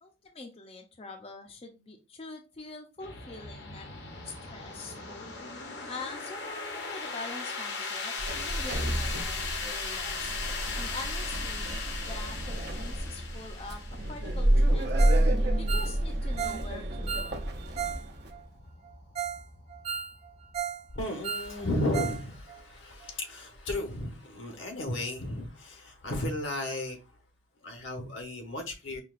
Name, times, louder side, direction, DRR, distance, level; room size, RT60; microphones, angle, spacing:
voice 1, 0.0-3.9 4.2-5.3 5.9-10.3 10.7-15.1 15.6-17.2, left 3 dB, 30° left, 0.5 m, -44 dB
sound 1, 3.0-21.6, left 4 dB, 65° left, 0.7 m, -39 dB
Sliding door, 8.2-18.3, right 1 dB, 55° right, 0.7 m, -29 dB
Ringtone, 15.0-15.3 15.5-18.0 18.3-18.4 18.9-19.0 19.2-19.4 19.7-20.8 21.1-22.2 22.5-22.6 23.0-23.1, right 8 dB, 35° right, 0.3 m, -35 dB
voice 2, 20.9-27.0 27.6-29.0, left 1 dB, 90° left, 1.1 m, -34 dB
5.6 x 2.3 x 2.4 m
head